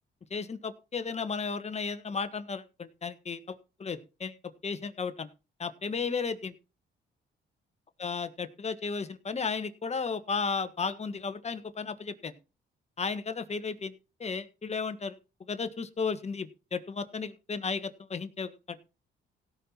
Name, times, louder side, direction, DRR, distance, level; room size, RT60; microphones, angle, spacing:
voice 1, 0.3-4.3 4.6-5.3 5.6-6.5 8.0-12.3 13.0-13.9 14.2-15.2 15.5-18.8, left 5 dB, 35° left, 10 dB, 1.5 m, -34 dB
17.0 x 5.8 x 4.5 m, 0.30 s
cardioid pair, 90°, 20 cm